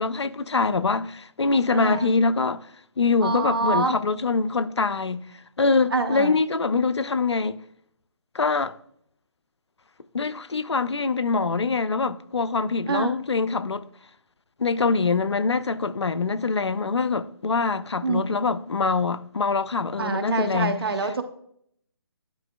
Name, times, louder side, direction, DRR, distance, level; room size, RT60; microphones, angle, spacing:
voice 1, 0.0-2.6 3.0-5.2 5.6-7.6 8.3-8.7 10.1-13.9 14.6-20.8, left 4 dB, 85° left, 0.5 m, -24 dB
voice 2, 1.7-2.1 3.2-4.0 5.9-6.3 12.9-13.1 18.0-18.4 20.0-21.2, right 3 dB, 60° right, 1.0 m, -26 dB
11.0 x 5.0 x 2.3 m
figure-of-eight pair, 150°, 14 cm